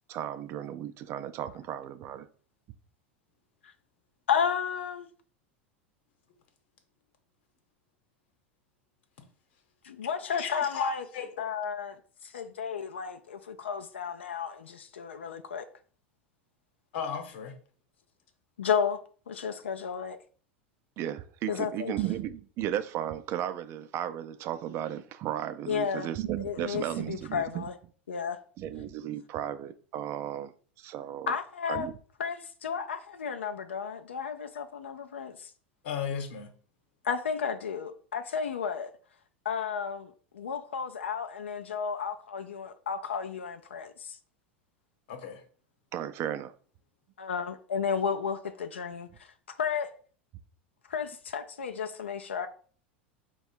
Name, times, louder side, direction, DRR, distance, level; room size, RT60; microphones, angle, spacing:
voice 1, 0.1-2.3 21.0-27.7 28.6-31.4 31.7-31.9 45.9-46.5, right 11 dB, 45° right, 0.4 m, -35 dB
voice 2, 4.3-5.1 9.8-11.0 11.4-12.0 12.2-15.7 18.6-20.2 21.5-21.9 25.7-27.7 28.1-28.4 31.3-31.9 32.2-35.5 37.0-38.9 39.4-44.2 47.2-49.9 50.9-52.5, left 7 dB, 85° left, 0.4 m, -33 dB
voice 3, 10.3-11.3 16.9-17.5 35.8-36.5 45.1-45.4, left 7 dB, 65° left, 1.0 m, -35 dB
4.6 x 2.3 x 4.3 m
hypercardioid pair, 90°, 6 cm